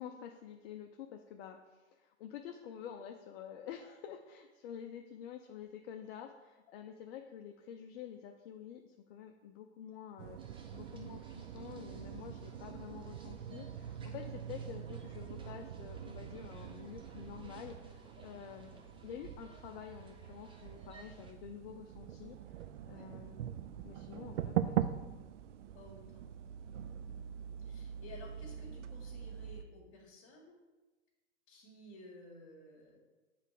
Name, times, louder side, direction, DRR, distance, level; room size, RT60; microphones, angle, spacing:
voice 1, 0.0-10.4 10.7-18.8 19.0-23.4 23.8-25.0, left 8 dB, 60° left, 4 dB, 0.6 m, -49 dB
sound 1, 10.2-29.6, right 10 dB, 80° right, 0.5 m, -43 dB
sound 2, 10.4-21.3, right 3 dB, 15° right, 0.8 m, -61 dB
voice 2, 22.8-23.1 25.7-26.3 26.9-27.3 27.6-30.6 31.5-33.0, left 2 dB, 40° left, -5 dB, 1.8 m, -55 dB
7.4 x 3.4 x 4.9 m, 1.2 s
hypercardioid pair, 115°, 35 cm